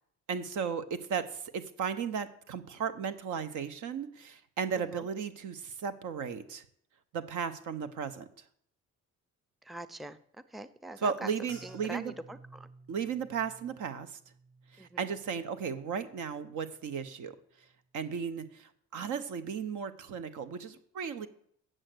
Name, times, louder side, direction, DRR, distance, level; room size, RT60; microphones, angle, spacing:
voice 1, 0.3-6.6 7.1-8.3 11.0-12.1 12.9-14.1 14.7-17.4 17.9-21.3, right 6 dB, 80° right, 12 dB, 1.1 m, -35 dB
voice 2, 9.7-10.2 10.5-12.7 14.8-15.0, right 1 dB, ahead, 14 dB, 0.5 m, -43 dB
sound 1, 11.5-16.0 16.4-17.0 17.6-17.8, right 3 dB, 35° right, 5.7 m, -56 dB
8.0 x 7.7 x 7.9 m, 0.65 s
cardioid pair, 90°, 30 cm